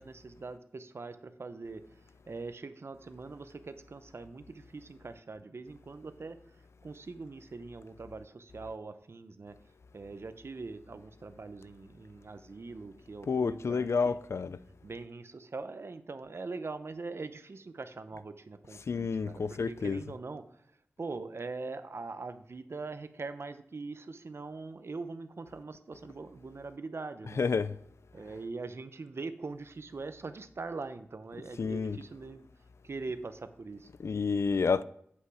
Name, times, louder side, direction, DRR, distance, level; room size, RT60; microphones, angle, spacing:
voice 1, 0.0-1.8 2.3-6.4 6.8-9.5 9.9-14.2 14.8-20.4 21.0-27.4 28.1-32.5 32.8-33.9, right 3 dB, 65° right, 0.7 m, -42 dB
voice 2, 13.3-14.6 18.9-20.0 27.2-27.8 31.6-32.0 34.0-34.8, left 5 dB, 75° left, 0.4 m, -30 dB
8.4 x 5.6 x 4.8 m
cardioid pair, 40°, 5 cm